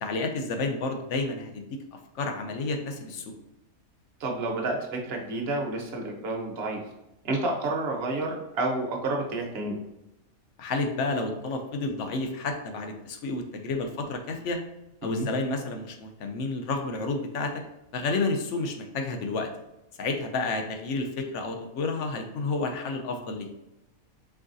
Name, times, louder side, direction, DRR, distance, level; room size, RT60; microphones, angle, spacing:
voice 1, 0.0-1.8 2.1-3.3 10.6-14.6 15.0-17.5 17.9-19.5 20.0-23.5, left 3 dB, 65° left, 5 dB, 0.9 m, -30 dB
voice 2, 4.2-6.9 7.2-9.8 15.0-15.3, right 2 dB, 50° right, 0 dB, 1.0 m, -30 dB
4.7 x 3.6 x 2.6 m, 0.91 s
omnidirectional pair, 1.5 m